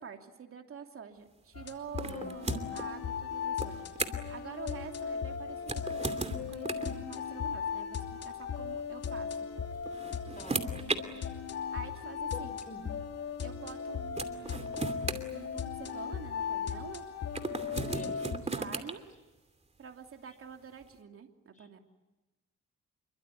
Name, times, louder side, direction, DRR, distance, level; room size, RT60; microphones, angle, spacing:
voice 1, 0.0-3.9 4.3-8.0 8.2-9.3 11.7-12.6 13.4-17.0 17.9-19.0 19.8-21.8, right 7 dB, 45° right, 4 dB, 2.9 m, -47 dB
sound 1, 1.5-18.4, left 7 dB, 55° left, 2.8 m, -37 dB
sound 2, 2.0-2.9 3.6-4.4 5.6-7.0 8.3-8.4 9.6-11.0 12.0-12.1 13.7-13.8 14.2-16.0 17.3-18.9, right 3 dB, 20° right, 2.7 m, -36 dB
voice 2, 10.4-10.7 12.3-12.8 17.9-18.3 21.5-21.8, left 2 dB, 25° left, 10 dB, 5.5 m, -47 dB
27.5 x 23.0 x 9.3 m, 1.1 s
cardioid pair, 90°, 30 cm